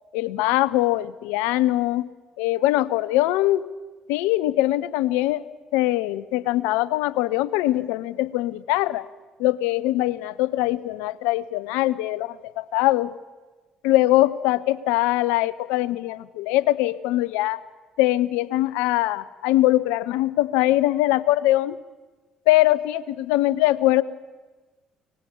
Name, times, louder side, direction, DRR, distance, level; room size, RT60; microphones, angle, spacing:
voice 1, 0.1-2.1 2.4-3.6 4.1-5.4 5.7-9.1 9.4-13.1 13.8-17.6 18.0-21.8 22.5-24.0, left 16 dB, 75° left, 20 dB, 0.6 m, -22 dB
23.5 x 19.0 x 7.1 m, 1.3 s
hypercardioid pair, 50°, 3 cm